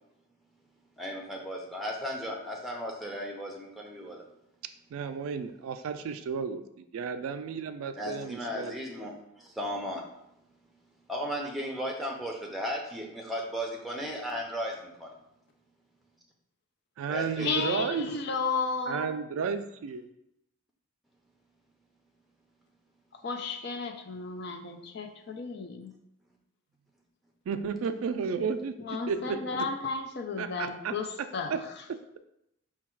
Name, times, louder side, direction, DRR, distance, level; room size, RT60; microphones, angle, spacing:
voice 1, 1.0-4.2 7.9-10.0 11.1-15.1 17.1-17.5, equal, ahead, -1 dB, 0.6 m, -35 dB
voice 2, 4.9-8.7 17.0-18.1 18.9-20.1 27.5-28.8 29.1-29.7 30.4-32.2, right 6 dB, 75° right, 10 dB, 0.3 m, -33 dB
voice 3, 17.4-19.1 23.1-25.9 28.8-31.6, left 4 dB, 50° left, 5 dB, 0.4 m, -33 dB
4.5 x 2.3 x 4.4 m, 0.81 s
head